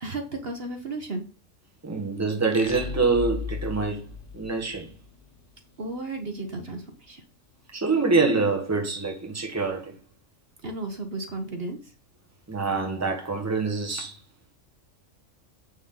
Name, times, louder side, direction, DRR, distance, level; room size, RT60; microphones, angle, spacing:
voice 1, 0.0-1.3 5.8-7.2 10.6-11.9, right 2 dB, 50° right, 1.4 m, -34 dB
voice 2, 1.8-4.1 4.3-4.9 7.7-10.0 12.5-14.2, right 4 dB, 10° right, 1.4 m, -25 dB
sound 1, 2.5-5.2, left 5 dB, 45° left, 1.1 m, -36 dB
8.3 x 6.0 x 3.9 m
omnidirectional pair, 1.3 m